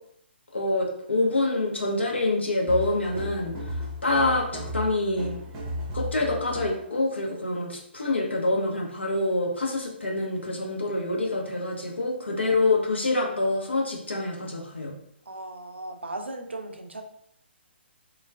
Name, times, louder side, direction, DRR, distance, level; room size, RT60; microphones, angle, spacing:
voice 1, 0.5-3.5 4.0-5.3 5.9-14.9, left 2 dB, 75° left, -1 dB, 0.6 m, -26 dB
sound 1, 2.7-6.9, left 1 dB, 20° right, 0.6 m, -34 dB
voice 2, 15.3-17.0, right 2 dB, 75° right, 4 dB, 0.4 m, -37 dB
3.2 x 2.3 x 2.2 m, 0.68 s
figure-of-eight pair, 130°, 6 cm